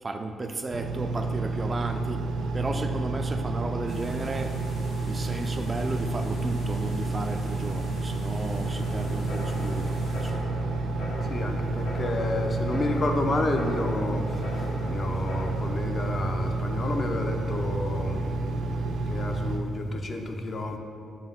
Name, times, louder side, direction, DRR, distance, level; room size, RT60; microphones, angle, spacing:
voice 1, 0.0-2.2 2.5-4.5 5.1-10.3, right 2 dB, 30° right, 6 dB, 0.3 m, -34 dB
Engine, 0.7-19.6, right 2 dB, 75° right, 0.6 m, -30 dB
sound 1, 3.9-10.3, left 2 dB, 70° left, 1.2 m, -48 dB
sound 2, 8.6-15.5, left 1 dB, 90° left, 1.3 m, -40 dB
voice 2, 11.2-20.8, left 2 dB, 40° left, 4 dB, 0.6 m, -30 dB
5.2 x 3.9 x 5.4 m, 2.6 s
cardioid pair, 100°, 0 cm